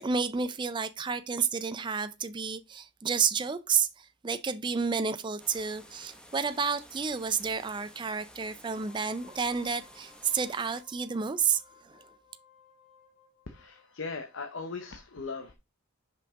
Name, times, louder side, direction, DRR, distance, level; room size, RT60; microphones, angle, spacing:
voice 1, 0.0-3.9 4.2-11.6, right 6 dB, 20° right, 0.3 m, -30 dB
sound 1, 5.4-10.8, equal, 5° left, 0.7 m, -53 dB
Wind instrument woodwind instrument, 8.6-13.9, left 7 dB, 30° left, 1.8 m, -60 dB
voice 2, 13.5-15.5, left 4 dB, 55° left, 0.7 m, -39 dB
5.7 x 5.2 x 3.6 m
head